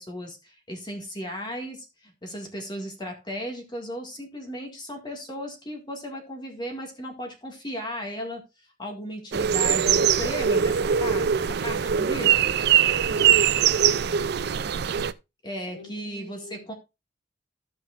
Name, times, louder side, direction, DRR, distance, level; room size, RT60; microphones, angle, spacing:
voice 1, 0.0-8.4 8.8-12.5 15.4-16.4 16.7-16.8, equal, 25° left, 1.9 m, -36 dB
sound 1, 9.3-15.1, right 8 dB, 55° right, 0.4 m, -22 dB
voice 2, 13.0-14.1 14.5-15.2 15.7-16.7, left 1 dB, 75° left, 2.5 m, -45 dB
15.0 x 5.3 x 2.5 m
head